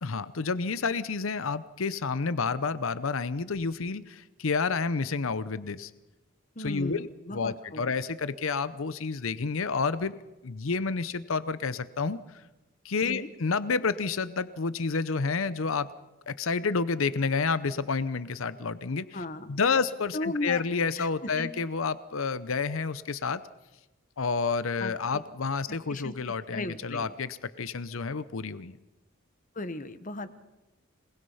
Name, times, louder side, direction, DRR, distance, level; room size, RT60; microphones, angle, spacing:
voice 1, 0.0-5.9 6.6-10.1 10.4-12.2 12.8-15.9 16.3-19.2 19.5-23.4 24.2-28.8, left 4 dB, 80° left, 15 dB, 0.7 m, -29 dB
voice 2, 6.6-7.8 13.0-13.3 19.1-19.5 20.1-20.6 21.0-21.5 24.8-25.2 25.9-27.1 29.5-30.4, left 2 dB, 40° left, 12 dB, 1.2 m, -36 dB
27.0 x 19.5 x 5.6 m, 1.0 s
head